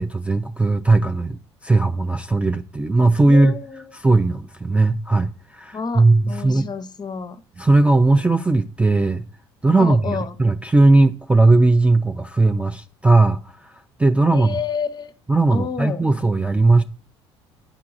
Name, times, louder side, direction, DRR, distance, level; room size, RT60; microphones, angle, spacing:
voice 1, 0.0-1.4 1.6-3.6 4.0-6.6 7.6-9.2 9.6-13.4 14.0-14.6 15.3-16.8, right 2 dB, 10° right, 0.3 m, -17 dB
voice 2, 3.3-3.9 5.7-7.4 9.8-10.4 14.3-15.1 15.5-16.1, left 5 dB, 30° left, 0.7 m, -29 dB
9.8 x 4.6 x 2.5 m
hypercardioid pair, 60°, 15 cm